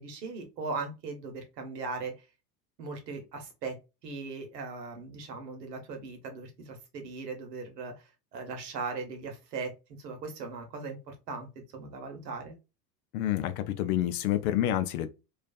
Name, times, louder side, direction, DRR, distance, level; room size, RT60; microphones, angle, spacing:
voice 1, 0.0-2.3 2.8-3.8 4.0-9.7 10.0-12.6, right 4 dB, 75° right, 1.0 m, -39 dB
voice 2, 13.1-15.1, left 12 dB, 60° left, 0.5 m, -28 dB
2.4 x 2.3 x 2.3 m
hypercardioid pair, 85°, 49 cm